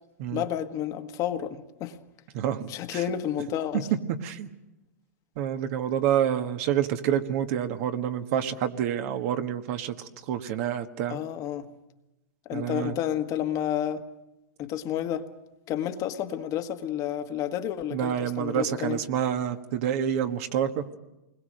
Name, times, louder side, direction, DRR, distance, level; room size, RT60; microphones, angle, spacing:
voice 1, 0.3-2.0 2.7-3.9 11.1-11.7 12.5-14.0 14.6-15.3 15.7-19.0, left 10 dB, 40° left, 1.6 m, -30 dB
voice 2, 2.3-3.0 4.2-4.5 5.4-11.2 12.5-12.9 17.9-20.9, right 9 dB, 55° right, 1.5 m, -28 dB
28.5 x 21.0 x 6.5 m
hypercardioid pair, 110°, 9 cm